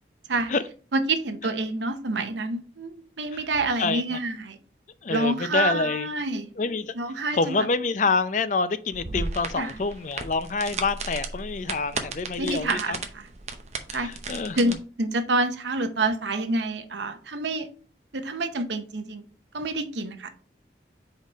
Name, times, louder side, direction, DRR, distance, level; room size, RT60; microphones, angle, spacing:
voice 1, 0.9-4.6 5.1-6.5 7.0-7.7 9.6-9.7 12.4-13.2 13.9-14.1 14.6-17.7 18.1-19.2 19.5-20.3, right 2 dB, 80° right, 0.8 m, -27 dB
voice 2, 3.8-4.2 5.0-6.1 6.6-6.9 7.3-13.0 13.9-14.8, left 4 dB, 45° left, 0.4 m, -27 dB
sound 1, 8.9-14.7, right 4 dB, 40° right, 0.7 m, -35 dB
5.1 x 4.1 x 5.0 m
head